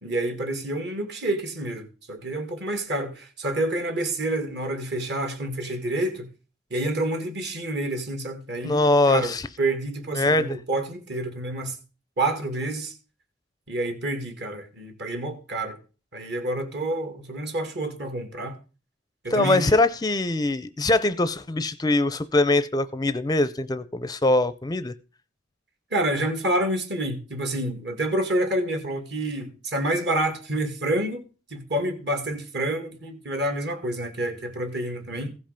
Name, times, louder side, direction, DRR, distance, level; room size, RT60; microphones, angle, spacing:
voice 1, 0.0-6.3 6.7-11.8 12.2-12.9 13.7-15.8 16.1-18.6 19.2-19.8 25.9-35.3, right 1 dB, 60° right, 2.2 m, -28 dB
voice 2, 8.6-9.5 10.1-10.6 19.3-24.9, left 2 dB, 20° left, 0.4 m, -22 dB
15.5 x 5.4 x 5.1 m
head